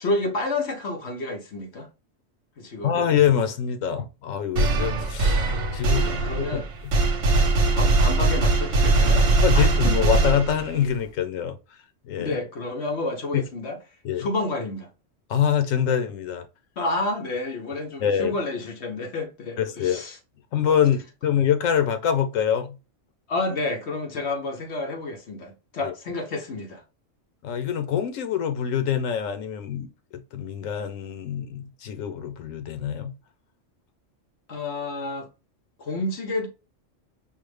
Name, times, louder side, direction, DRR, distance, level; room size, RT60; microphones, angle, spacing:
voice 1, 0.0-1.9 2.6-3.1 6.0-6.7 7.7-10.0 12.2-13.8 14.2-14.9 16.8-20.2 23.3-26.8 34.5-35.3 35.8-36.5, left 2 dB, 60° left, 1.2 m, -30 dB
voice 2, 2.8-6.6 9.4-11.6 12.0-12.4 13.3-13.4 14.0-14.3 15.3-16.5 18.0-18.4 19.6-20.0 20.5-22.8 25.8-25.9 27.4-33.1, left 9 dB, 85° left, 1.1 m, -25 dB
sound 1, 4.6-10.9, right 2 dB, 75° right, 1.2 m, -21 dB
5.4 x 2.0 x 3.2 m
omnidirectional pair, 1.3 m